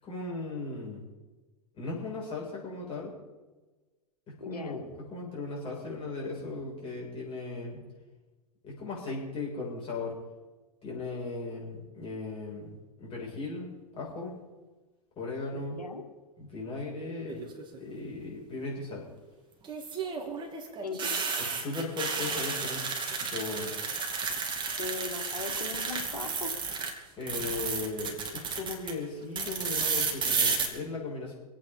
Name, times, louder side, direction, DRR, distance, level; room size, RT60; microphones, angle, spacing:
voice 1, 0.0-1.0 1.7-3.1 4.3-7.8 8.6-10.1 10.8-12.7 13.0-14.3 15.2-15.8 16.4-17.5 17.8-19.0 21.4-23.7 27.2-31.3, left 3 dB, 30° left, -3 dB, 7.3 m, -37 dB
voice 2, 4.4-4.8 15.5-16.0 20.8-21.2 24.8-26.5, left 4 dB, 90° left, 4 dB, 2.1 m, -38 dB
sound 1, 17.3-17.8 19.6-26.9 27.2-28.9 29.4-30.7, right 5 dB, 25° right, 2.7 m, -32 dB
26.0 x 8.9 x 5.5 m, 1.2 s
hypercardioid pair, 100°, 20 cm